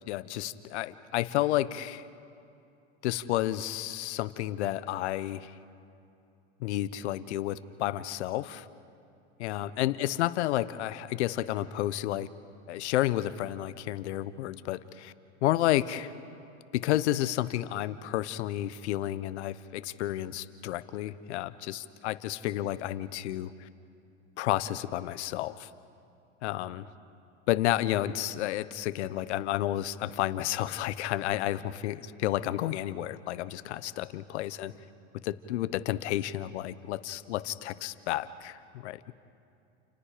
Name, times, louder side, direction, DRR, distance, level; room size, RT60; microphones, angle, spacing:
voice 1, 0.0-2.1 3.0-5.5 6.6-8.7 9.4-12.3 12.7-15.1 15.4-16.1 16.7-23.7 24.4-25.7 26.4-26.9 27.5-34.7 35.2-39.1, left 14 dB, 70° left, 14 dB, 1.1 m, -31 dB
30.0 x 29.5 x 5.1 m, 2.6 s
hypercardioid pair, 105°, 35 cm